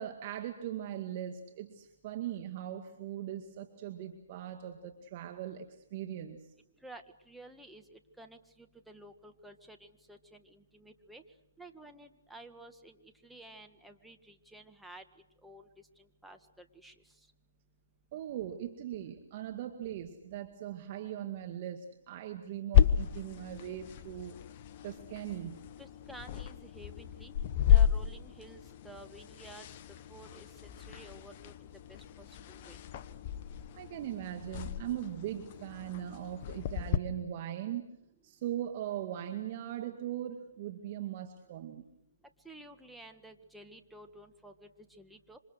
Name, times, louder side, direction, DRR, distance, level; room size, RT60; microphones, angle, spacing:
voice 1, 0.0-6.5 18.1-24.3 24.8-25.6 33.7-37.9 38.2-41.9, right 11 dB, 40° right, 5 dB, 2.1 m, -40 dB
voice 2, 6.8-11.2 11.6-15.0 15.4-15.7 16.0-17.0 25.8-27.3 27.7-28.6 28.8-29.7 30.1-32.8 42.5-45.4, right 1 dB, ahead, 4 dB, 1.7 m, -52 dB
sound 1, 22.7-37.0, left 10 dB, 40° left, 1.1 m, -32 dB
27.5 x 26.0 x 6.5 m, 0.84 s
hypercardioid pair, 140°, 0 cm